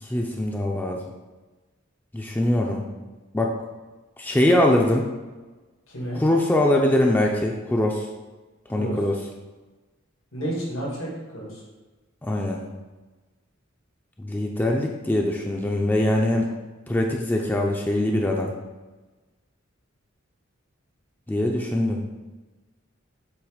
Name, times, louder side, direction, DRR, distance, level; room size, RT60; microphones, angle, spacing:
voice 1, 0.0-1.0 2.1-2.8 3.3-3.6 4.2-5.1 6.1-8.1 8.7-9.2 12.2-12.6 14.2-16.5 16.9-18.5 21.3-22.0, left 1 dB, 10° left, 0 dB, 0.5 m, -22 dB
voice 2, 10.3-11.6, right 1 dB, 85° left, -4 dB, 2.0 m, -31 dB
7.9 x 3.0 x 5.0 m, 1.2 s
head